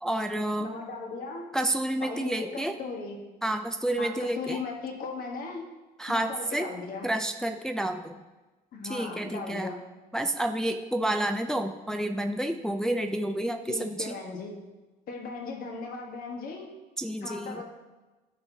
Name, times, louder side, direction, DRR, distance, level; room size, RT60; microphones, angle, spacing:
voice 1, 0.0-0.7 1.5-2.7 3.4-4.6 6.0-6.7 7.0-8.2 8.9-9.7 10.1-14.1 17.0-17.6, right 1 dB, 5° left, 5 dB, 0.4 m, -29 dB
voice 2, 0.6-1.5 2.0-3.2 4.0-5.6 6.1-7.1 8.7-9.8 13.7-14.5 15.1-16.7 17.2-17.6, left 4 dB, 60° left, 1 dB, 1.4 m, -37 dB
13.0 x 4.5 x 2.8 m, 1.2 s
cardioid pair, 110°, 17 cm